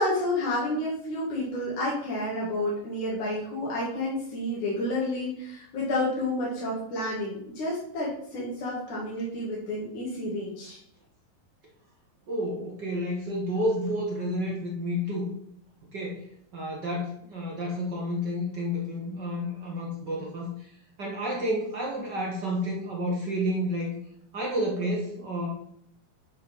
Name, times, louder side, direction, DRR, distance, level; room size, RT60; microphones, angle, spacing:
voice 1, 0.0-10.8, left 1 dB, 60° left, -7 dB, 3.5 m, -30 dB
voice 2, 12.3-15.3 15.9-16.2 16.5-20.7 21.0-23.9 24.3-25.5, equal, 45° right, -2 dB, 1.5 m, -30 dB
10.5 x 4.7 x 5.4 m, 0.69 s
omnidirectional pair, 4.0 m